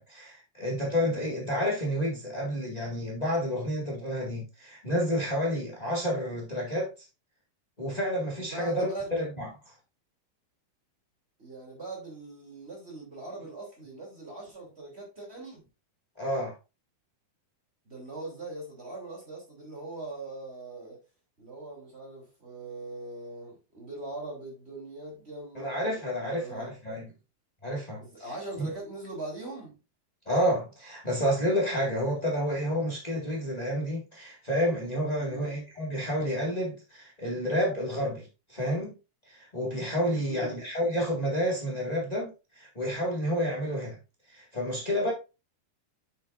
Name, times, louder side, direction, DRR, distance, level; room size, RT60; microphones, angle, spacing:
voice 1, 0.0-6.9 7.8-9.5 16.2-16.5 25.5-27.1 27.6-28.0 28.6-28.7 30.2-38.9 39.3-44.0 44.3-45.1, equal, 85° left, 0.3 m, -30 dB
voice 2, 8.4-9.1 11.4-15.6 17.8-21.0 21.4-26.7 28.0-29.8 35.2-35.5 40.2-40.6, right 2 dB, 15° right, 2.8 m, -41 dB
7.9 x 7.6 x 2.5 m
omnidirectional pair, 4.5 m